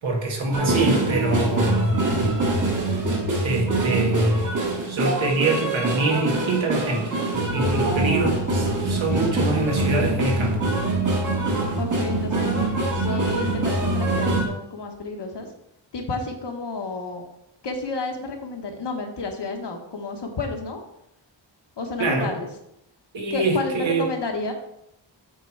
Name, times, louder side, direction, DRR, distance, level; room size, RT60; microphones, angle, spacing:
voice 1, 0.0-2.0 3.4-4.6 4.9-7.1 7.5-10.6 22.0-22.3 23.1-24.1, right 2 dB, 75° right, 0 dB, 1.9 m, -24 dB
sound 1, 0.5-14.5, right 2 dB, 40° right, 1.8 m, -24 dB
voice 2, 11.8-12.6 12.9-15.5 15.9-17.2 17.6-20.8 21.8-22.5 23.3-24.5, left 3 dB, 60° left, 3 dB, 1.3 m, -31 dB
8.2 x 4.5 x 4.6 m, 0.81 s
wide cardioid pair, 170°, 46 cm